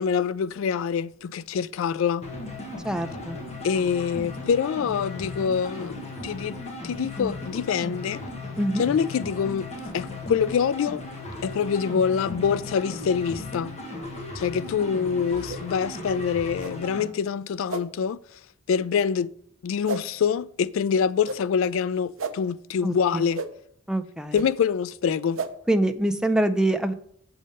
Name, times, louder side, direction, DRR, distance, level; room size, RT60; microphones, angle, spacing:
voice 1, 0.0-2.3 3.6-6.6 6.8-8.2 8.8-9.7 9.9-11.0 11.4-13.7 14.4-18.2 18.7-19.3 19.6-23.4 24.3-25.4, left 7 dB, 70° left, 0.3 m, -25 dB
sound 1, 2.2-17.1, left 2 dB, 35° left, 1.6 m, -36 dB
voice 2, 2.8-3.4 8.6-8.8 22.8-23.2 23.9-24.3 25.7-26.9, right 1 dB, 5° right, 0.5 m, -24 dB
sound 2, 15.5-15.6 16.6-16.7 17.7-17.8 18.7-18.8 19.8-20.0 21.2-21.4 22.2-22.3 23.3-23.5 24.3-24.5 25.3-25.5, right 4 dB, 70° right, 0.8 m, -32 dB
7.6 x 5.5 x 5.2 m
head